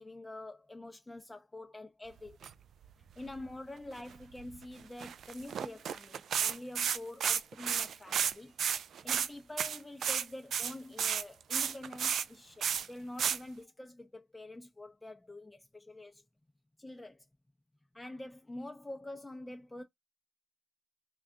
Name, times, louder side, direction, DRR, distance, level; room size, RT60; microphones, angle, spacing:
voice 1, 0.0-2.5 3.2-8.6 9.0-16.2 16.8-17.2 17.9-19.8, left 1 dB, 15° left, 0.5 m, -46 dB
sound 1, 2.3-2.5 2.8-2.9 3.2-3.4 4.0-4.6 5.0-8.3 8.6-9.3 9.6-10.3 10.5-12.2 12.6-12.9 13.2-13.4, right 8 dB, 85° right, 0.3 m, -32 dB
3.3 x 2.3 x 3.7 m
cardioid pair, 105°, 0 cm